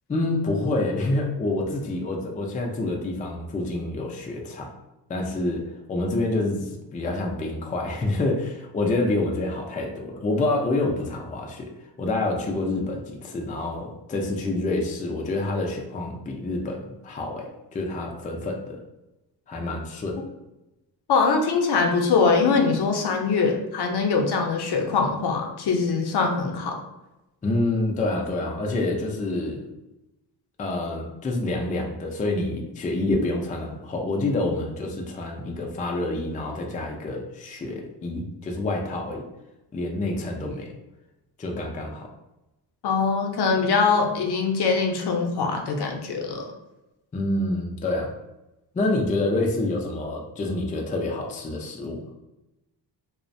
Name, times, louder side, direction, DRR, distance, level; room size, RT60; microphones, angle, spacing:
voice 1, 0.1-4.7 5.1-5.6 5.9-11.7 12.0-18.8 19.5-20.2 27.4-29.7 30.6-39.2 39.7-40.7 41.4-42.1 47.1-48.1 48.7-52.0, left 2 dB, 20° left, 1 dB, 0.3 m, -27 dB
voice 2, 21.1-26.8 42.8-46.5, left 4 dB, 65° left, 2 dB, 0.6 m, -22 dB
2.4 x 2.0 x 2.5 m, 0.97 s
cardioid pair, 70°, 43 cm